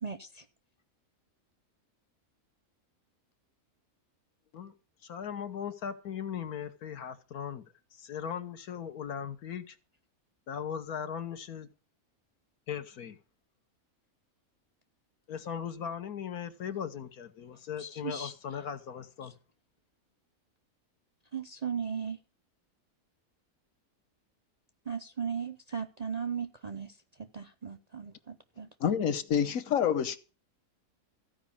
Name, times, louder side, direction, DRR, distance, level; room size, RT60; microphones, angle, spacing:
voice 1, 0.0-0.4 17.8-18.3 21.3-22.2 24.9-26.9 27.2-28.7, right 6 dB, 40° right, 0.6 m, -37 dB
voice 2, 5.0-7.6 7.9-9.8 10.5-11.7 12.7-13.2 15.3-19.4, left 8 dB, 85° left, 1.6 m, -38 dB
voice 3, 28.8-30.2, left 8 dB, 65° left, 1.3 m, -27 dB
14.5 x 5.1 x 8.5 m
omnidirectional pair, 1.5 m